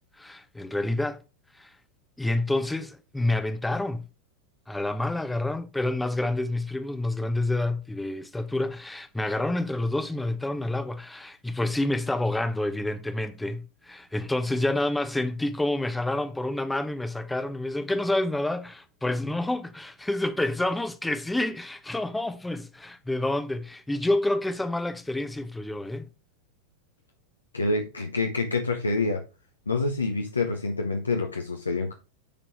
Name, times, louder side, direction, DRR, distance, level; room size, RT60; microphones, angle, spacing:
voice 1, 0.2-1.2 1.6-1.7 2.2-4.1 4.7-26.1, left 2 dB, 5° left, 0.7 m, -28 dB
voice 2, 27.5-29.2 29.7-31.9, left 3 dB, 80° left, 0.9 m, -27 dB
10.0 x 3.9 x 3.0 m
figure-of-eight pair, 90°, 0 cm